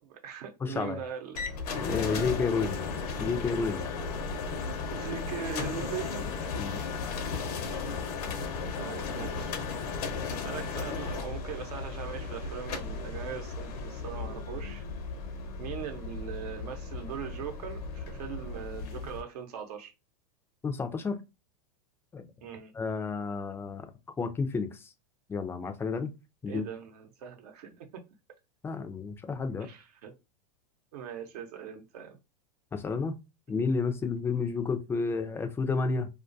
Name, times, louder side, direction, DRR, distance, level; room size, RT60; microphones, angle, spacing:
voice 1, 0.0-1.4 4.9-6.3 6.9-7.0 8.8-9.6 10.3-14.8 15.6-19.9 22.4-22.7 26.5-28.0 29.6-30.1 30.9-32.2, right 8 dB, 70° right, 0.8 m, -40 dB
voice 2, 0.6-1.0 1.8-2.9 3.2-3.8 6.6-6.8 20.6-21.2 22.1-22.3 22.7-23.8 24.2-24.7 25.3-26.1 26.4-26.6 28.6-29.7 32.7-33.1 33.5-36.1, left 4 dB, 10° left, 0.3 m, -31 dB
sound 1, 1.3-19.2, left 4 dB, 70° left, 0.6 m, -35 dB
2.3 x 2.2 x 2.5 m
hypercardioid pair, 115°, 20 cm